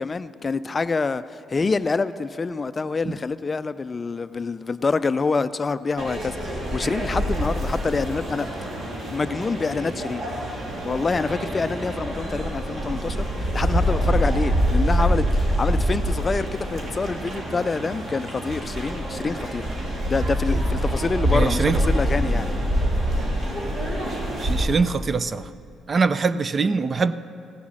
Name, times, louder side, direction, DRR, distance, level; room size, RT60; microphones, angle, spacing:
voice 1, 0.0-8.5 9.1-10.3 10.8-19.7 20.1-22.5, left 4 dB, 30° left, 13 dB, 0.3 m, -26 dB
sound 1, 6.0-24.7, equal, 60° right, 2.6 m, -25 dB
voice 2, 21.3-21.8 24.4-25.4 25.9-27.1, right 4 dB, 40° right, 14 dB, 0.4 m, -23 dB
16.0 x 7.1 x 6.3 m, 2.5 s
cardioid pair, 90°, 0 cm